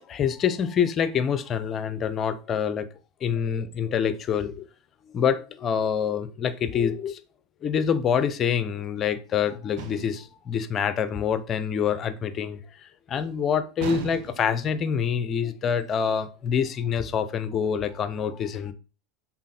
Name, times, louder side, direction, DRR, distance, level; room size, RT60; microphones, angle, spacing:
voice 1, 0.1-2.9 3.2-4.7 5.1-7.2 7.6-18.7, left 7 dB, 40° left, 0.6 m, -26 dB
sound 1, 9.8-10.3 13.8-14.6, right 11 dB, 65° right, 0.7 m, -36 dB
6.0 x 4.1 x 4.2 m
hypercardioid pair, 100°, 0 cm